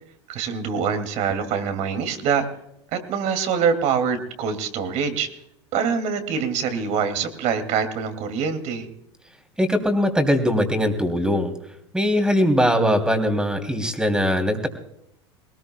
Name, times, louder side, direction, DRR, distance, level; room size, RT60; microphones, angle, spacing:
voice 1, 0.3-2.5 2.9-5.3 5.7-8.9, right 6 dB, 55° right, 8 dB, 2.5 m, -24 dB
voice 2, 9.6-11.5 11.9-14.7, equal, 5° right, 5 dB, 3.1 m, -21 dB
21.0 x 19.5 x 2.3 m, 0.78 s
hypercardioid pair, 95°, 15 cm